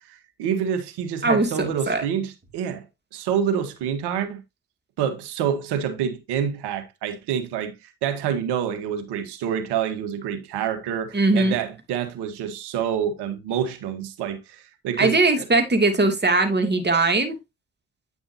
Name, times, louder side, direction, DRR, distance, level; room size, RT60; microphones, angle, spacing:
voice 1, 0.1-2.9 3.1-4.4 5.0-15.4, right 8 dB, 75° right, 1.7 m, -27 dB
voice 2, 1.2-2.0 11.1-11.6 15.0-17.4, right 2 dB, 25° right, 2.9 m, -20 dB
9.5 x 6.1 x 2.9 m
hypercardioid pair, 50°, 40 cm